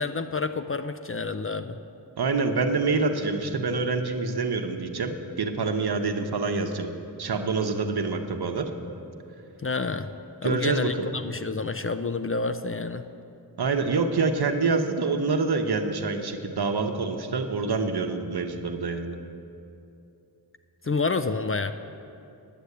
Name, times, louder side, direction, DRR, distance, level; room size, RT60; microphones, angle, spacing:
voice 1, 0.0-1.8 9.6-10.1 10.4-13.0 20.8-21.7, left 4 dB, 35° left, 9 dB, 0.4 m, -29 dB
voice 2, 2.2-6.9 7.2-8.7 10.4-11.1 13.6-19.2, right 4 dB, 70° right, 6 dB, 1.0 m, -26 dB
10.0 x 8.0 x 8.4 m, 2.7 s
wide cardioid pair, 100°, 41 cm